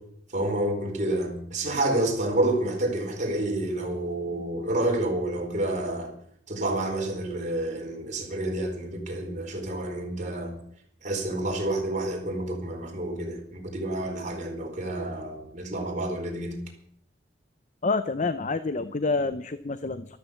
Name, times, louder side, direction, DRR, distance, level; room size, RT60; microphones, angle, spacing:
voice 1, 0.3-6.1 6.5-10.5 11.0-16.5, right 1 dB, 40° right, 1 dB, 4.5 m, -29 dB
voice 2, 17.8-20.2, left 3 dB, 40° left, 12 dB, 0.7 m, -28 dB
13.5 x 13.5 x 7.0 m, 0.66 s
head